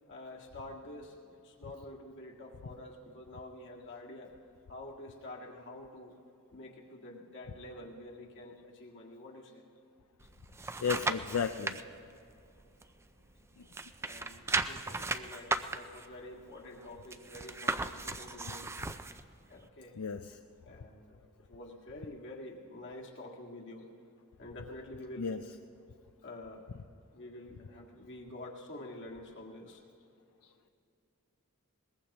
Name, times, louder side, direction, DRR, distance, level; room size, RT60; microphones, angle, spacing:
voice 1, 0.1-4.3 4.7-6.2 6.5-9.6 14.0-18.7 19.5-20.0 20.7-23.9 24.4-25.4 26.2-26.8 27.1-29.8, left 1 dB, 55° left, -1 dB, 1.9 m, -48 dB
sound 1, 10.2-11.8 12.3-13.4 13.7-19.2 19.7-19.8, right 3 dB, 10° right, 0.4 m, -36 dB
voice 2, 10.8-11.8 20.0-20.2 25.2-25.4, left 6 dB, 80° left, 6 dB, 0.5 m, -33 dB
22.0 x 20.0 x 2.9 m, 2.5 s
head